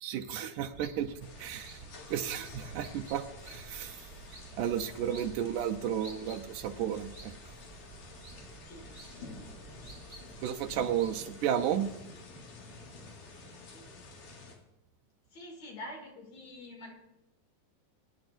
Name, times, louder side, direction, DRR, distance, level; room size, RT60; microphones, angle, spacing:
voice 1, 0.0-1.8 2.1-4.0 4.6-7.3 10.4-11.9, right 9 dB, 75° right, 5 dB, 2.2 m, -33 dB
sound 1, 0.7-11.2, right 3 dB, 25° right, 1.3 m, -52 dB
sound 2, 1.2-14.6, left 3 dB, 70° left, 3.6 m, -50 dB
voice 2, 13.5-13.9 15.3-16.9, left 1 dB, 55° left, 1 dB, 3.4 m, -46 dB
22.5 x 10.5 x 2.6 m, 0.91 s
omnidirectional pair, 3.8 m